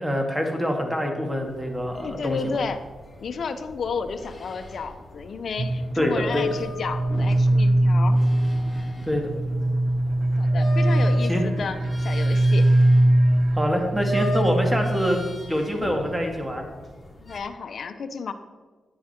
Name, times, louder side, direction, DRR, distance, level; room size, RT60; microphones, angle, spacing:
voice 1, 0.0-2.6 6.0-6.5 9.0-9.3 11.3-11.4 13.5-15.2 15.5-16.6, equal, 10° right, 3 dB, 2.3 m, -25 dB
sound 1, 1.4-17.4, equal, 25° left, 3.0 m, -39 dB
voice 2, 2.0-2.8 3.2-8.2 10.4-12.7 17.2-18.3, left 5 dB, 60° left, 7 dB, 0.8 m, -32 dB
sound 2, 5.6-15.4, right 1 dB, 55° right, 0.6 m, -21 dB
10.0 x 9.5 x 4.5 m, 1.4 s
cardioid pair, 75°, 0 cm